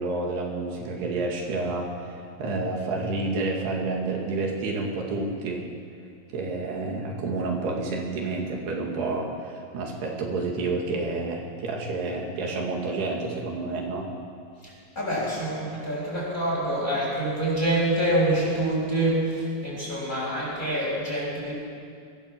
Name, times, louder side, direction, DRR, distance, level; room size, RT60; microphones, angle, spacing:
voice 1, 0.0-5.6 6.3-14.1, right 3 dB, 80° right, 0 dB, 4.2 m, -29 dB
voice 2, 15.0-21.5, right 1 dB, 10° left, -5 dB, 7.4 m, -26 dB
23.5 x 16.5 x 7.5 m, 2.3 s
omnidirectional pair, 4.6 m